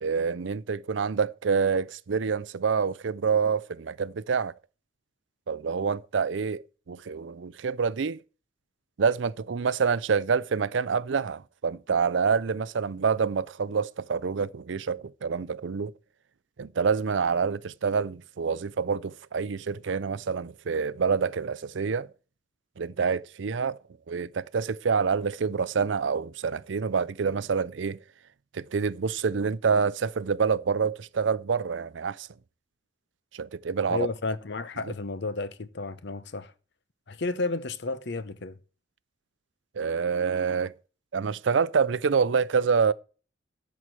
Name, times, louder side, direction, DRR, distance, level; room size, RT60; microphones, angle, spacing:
voice 1, 0.0-4.5 5.5-8.2 9.0-15.9 16.6-22.1 22.8-23.8 24.1-28.0 28.5-32.3 33.3-34.1 39.8-40.7 41.1-42.9, right 5 dB, 70° right, 0.5 m, -27 dB
voice 2, 33.9-36.5 37.1-38.6, left 3 dB, 60° left, 0.9 m, -32 dB
12.5 x 4.6 x 7.6 m
head